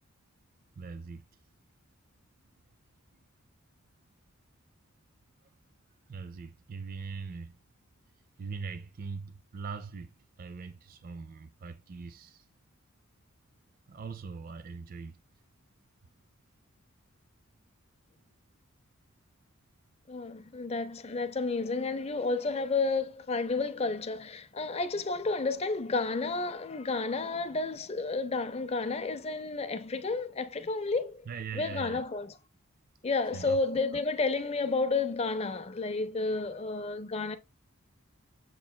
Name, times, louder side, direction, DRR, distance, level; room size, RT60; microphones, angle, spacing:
voice 1, 0.8-1.2 5.4-5.5 6.1-7.6 8.4-12.5 13.9-15.2 31.3-32.0 33.3-33.6, right 5 dB, 40° right, 0.3 m, -41 dB
voice 2, 20.1-31.2 31.5-32.3 33.0-37.4, left 3 dB, 30° left, 0.4 m, -31 dB
7.2 x 3.0 x 2.2 m
head